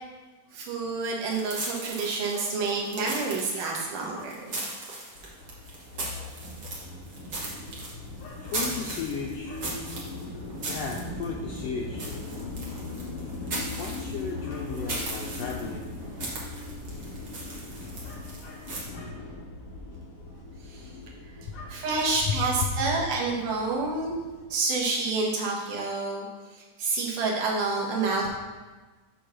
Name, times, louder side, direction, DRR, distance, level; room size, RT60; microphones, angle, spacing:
voice 1, 0.5-4.3 20.7-20.8 21.7-24.1 24.5-26.3 26.5-28.3, right 3 dB, 80° right, -2 dB, 3.0 m, -28 dB
sound 1, 1.2-18.8, right 2 dB, 45° right, 1.6 m, -38 dB
voice 2, 2.3-2.8 3.2-3.4 4.1-4.5 8.2-9.8 10.7-12.2 13.8-15.9 18.0-19.3 21.5-22.7, left 5 dB, 80° left, 0 dB, 1.5 m, -36 dB
sound 2, 5.1-24.4, left 3 dB, 55° left, 1.8 m, -40 dB
8.2 x 3.9 x 6.0 m, 1.3 s
omnidirectional pair, 3.7 m